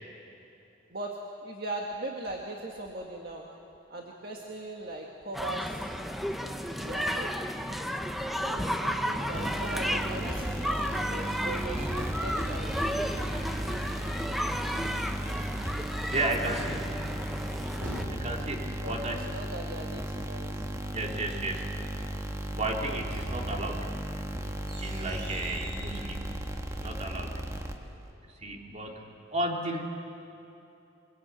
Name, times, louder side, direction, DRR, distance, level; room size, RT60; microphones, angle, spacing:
voice 1, 0.9-3.5 3.9-5.8 6.7-7.4 8.4-12.8 18.8-20.5, right 2 dB, 55° right, -1 dB, 1.9 m, -39 dB
sound 1, 5.3-18.0, equal, ahead, 1.0 m, -33 dB
sound 2, 9.3-28.1, right 1 dB, 15° right, 1.4 m, -35 dB
voice 2, 13.2-13.7 16.1-16.9 18.1-19.3 20.9-21.7 22.5-24.2 24.8-26.4 26.7-27.4 28.2-29.0 29.3-29.8, right 2 dB, 35° right, 0 dB, 3.1 m, -34 dB
sound 3, 17.3-18.7 22.7-26.0, equal, 75° right, 7.3 m, -41 dB
23.5 x 22.0 x 8.8 m, 2.8 s
head